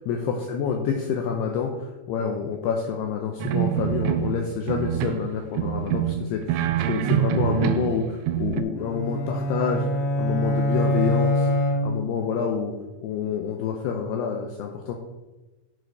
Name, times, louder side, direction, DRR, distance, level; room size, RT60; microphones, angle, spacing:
voice 1, 0.1-11.5 11.8-12.7 13.0-14.9, left 6 dB, 85° left, 2 dB, 2.3 m, -28 dB
sound 1, 3.4-4.4 4.7-5.3 5.6-8.0 8.3-8.6, right 11 dB, 85° right, 2.4 m, -25 dB
sound 2, 8.8-12.3, left 1 dB, 55° left, 3.5 m, -24 dB
11.0 x 5.0 x 4.7 m, 1.1 s
omnidirectional pair, 5.4 m